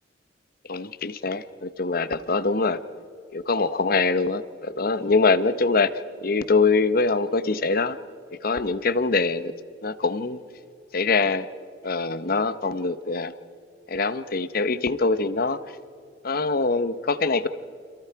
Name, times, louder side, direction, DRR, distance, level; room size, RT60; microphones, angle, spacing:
voice 1, 0.7-2.8 3.3-5.9 6.2-8.0 8.4-9.5 9.8-10.4 10.9-11.5 11.8-13.3 13.9-15.6 16.2-17.5, left 3 dB, 50° left, 13 dB, 0.9 m, -23 dB
29.5 x 27.0 x 4.7 m, 2.3 s
head